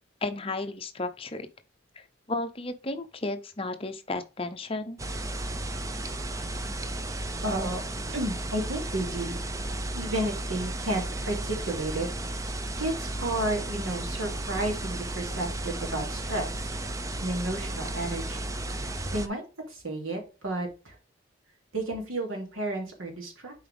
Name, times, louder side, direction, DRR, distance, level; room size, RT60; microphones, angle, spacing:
voice 1, 0.2-1.5 2.0-5.0, left 2 dB, 25° left, 0.7 m, -33 dB
sound 1, 5.0-19.3, right 1 dB, 15° right, 0.5 m, -34 dB
voice 2, 7.4-7.8 8.1-9.4 9.9-12.1 12.5-16.7 17.2-18.4 18.8-20.9 21.7-23.5, right 1 dB, 80° right, 2.8 m, -32 dB
7.5 x 4.7 x 3.5 m
head